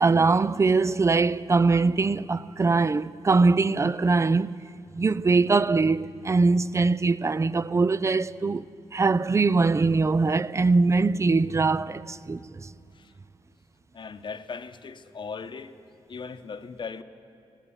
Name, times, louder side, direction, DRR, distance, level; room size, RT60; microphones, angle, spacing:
voice 1, 0.0-4.5 5.0-12.7, right 3 dB, 30° right, 0.5 m, -22 dB
voice 2, 13.9-15.8 16.1-17.0, left 5 dB, 50° left, 1.0 m, -38 dB
17.0 x 15.5 x 9.7 m
cardioid pair, 75°, 10 cm